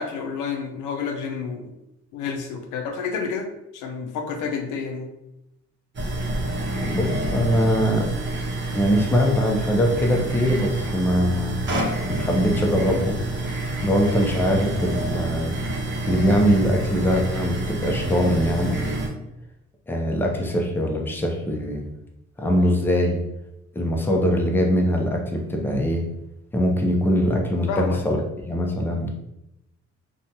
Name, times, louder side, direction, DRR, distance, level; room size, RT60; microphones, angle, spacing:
voice 1, 0.0-1.7 2.1-3.5 3.7-5.1 14.2-14.3 27.7-28.0, left 5 dB, 85° left, 5 dB, 0.5 m, -29 dB
sound 1, 5.9-19.1, right 2 dB, 40° right, 0.8 m, -28 dB
voice 2, 6.8-8.1 8.7-11.6 12.1-13.2 13.8-15.5 16.1-19.1 19.9-21.8 22.4-23.2 23.7-26.0 26.5-28.2 28.5-29.1, equal, 5° left, 1 dB, 0.5 m, -22 dB
2.8 x 2.2 x 2.6 m, 0.86 s
cardioid pair, 90°, 30 cm